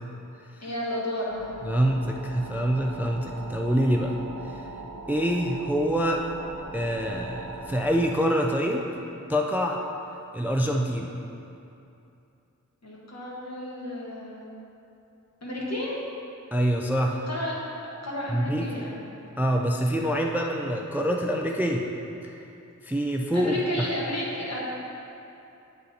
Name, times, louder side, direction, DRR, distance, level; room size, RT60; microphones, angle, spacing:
voice 1, 0.6-1.5 12.8-14.5 15.4-16.0 17.3-17.5 18.0-19.0 23.3-24.6, left 1 dB, 55° left, -5 dB, 1.4 m, -32 dB
sound 1, 1.3-8.2, right 3 dB, 65° right, 0.7 m, -40 dB
voice 2, 1.7-4.2 4.4-4.6 5.1-6.2 6.7-8.8 9.3-9.8 10.3-11.1 16.5-17.2 18.3-18.9 19.4-21.9 22.2-22.4 22.8-23.9, equal, 5° right, 1 dB, 0.3 m, -25 dB
8.1 x 4.0 x 4.1 m, 2.8 s
wide cardioid pair, 80°, 31 cm